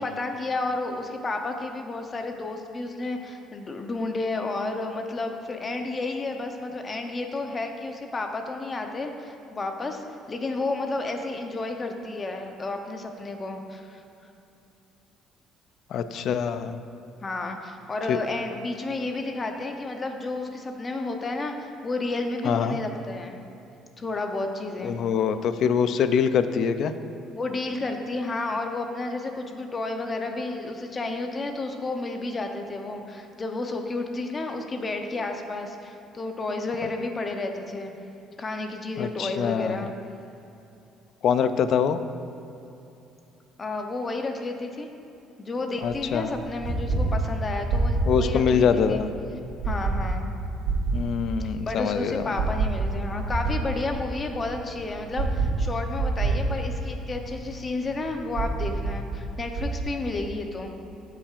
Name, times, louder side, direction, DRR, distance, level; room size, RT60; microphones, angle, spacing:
voice 1, 0.0-14.0 17.2-23.4 24.0-25.0 27.3-37.9 38.4-39.9 43.6-44.9 45.4-49.0 49.6-50.2 51.6-60.7, left 2 dB, 25° left, 4 dB, 0.7 m, -31 dB
voice 2, 15.9-16.8 18.1-18.2 22.4-22.8 24.8-26.9 39.0-39.9 41.2-42.0 45.8-46.3 48.0-49.1 50.9-52.2, left 7 dB, 55° left, 11 dB, 0.4 m, -24 dB
sound 1, 45.8-59.8, right 3 dB, 90° right, 1.8 m, -28 dB
13.0 x 5.7 x 2.5 m, 2.8 s
cardioid pair, 130°, 0 cm